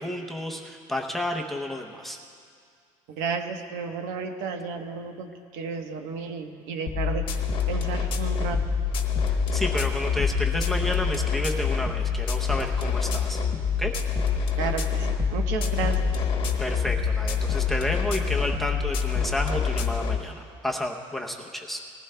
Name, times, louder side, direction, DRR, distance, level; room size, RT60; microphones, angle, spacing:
voice 1, 0.0-2.2 9.2-13.4 13.8-13.9 16.6-21.8, left 1 dB, ahead, 1 dB, 0.7 m, -31 dB
voice 2, 3.1-7.2 7.7-8.6 14.6-16.1, right 5 dB, 80° right, 5 dB, 1.1 m, -32 dB
sound 1, 6.9-20.2, left 6 dB, 40° left, 1.1 m, -26 dB
20.0 x 15.5 x 2.2 m, 2.2 s
cardioid pair, 165°, 13 cm